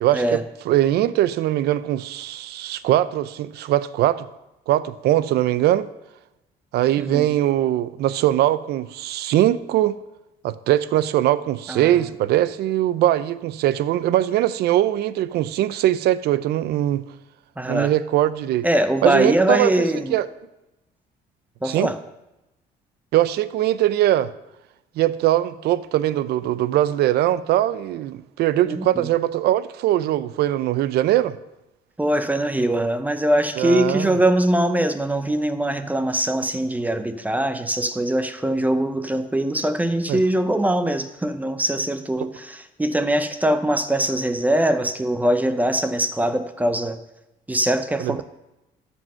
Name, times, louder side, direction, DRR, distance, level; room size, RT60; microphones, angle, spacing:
voice 1, 0.0-0.4 0.7-4.3 4.7-5.9 6.7-10.0 10.4-17.0 17.7-18.7 19.0-20.3 21.6-21.9 23.1-24.3 25.0-31.4 33.6-34.2 40.1-40.2 48.0-48.2, right 13 dB, 75° right, 0.5 m, -21 dB
voice 2, 7.0-7.3 11.7-12.0 17.6-17.9 18.6-20.1 21.6-22.0 28.6-29.1 32.0-47.0 47.5-48.2, right 1 dB, 10° right, 0.7 m, -22 dB
13.0 x 5.5 x 5.5 m
cardioid pair, 110°, 17 cm